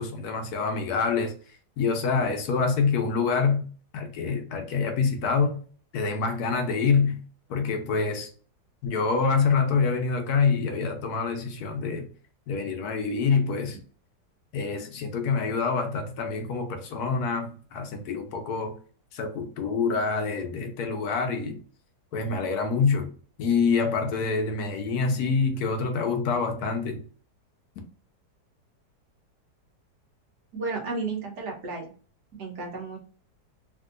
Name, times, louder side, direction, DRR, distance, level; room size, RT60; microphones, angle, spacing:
voice 1, 0.0-1.3 1.8-3.6 3.9-5.6 5.9-7.2 7.5-8.3 8.8-12.1 12.5-13.8 14.5-18.7 19.1-21.6 22.1-23.1 23.4-27.0, left 5 dB, 70° left, 1.2 m, -26 dB
voice 2, 30.5-31.9 32.4-33.0, right 3 dB, 75° right, 1.6 m, -33 dB
3.6 x 2.6 x 2.5 m
omnidirectional pair, 1.8 m